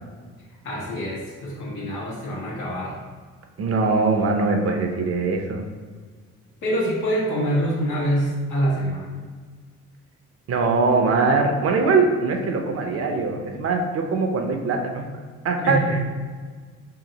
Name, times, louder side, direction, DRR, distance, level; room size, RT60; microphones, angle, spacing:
voice 1, 0.6-3.0 6.6-9.3 15.6-16.0, equal, 80° left, -6 dB, 1.1 m, -25 dB
voice 2, 3.6-5.6 10.5-15.0 15.4-16.0, right 4 dB, 50° right, 3 dB, 0.6 m, -22 dB
2.9 x 2.8 x 3.9 m, 1.5 s
cardioid pair, 90°, 30 cm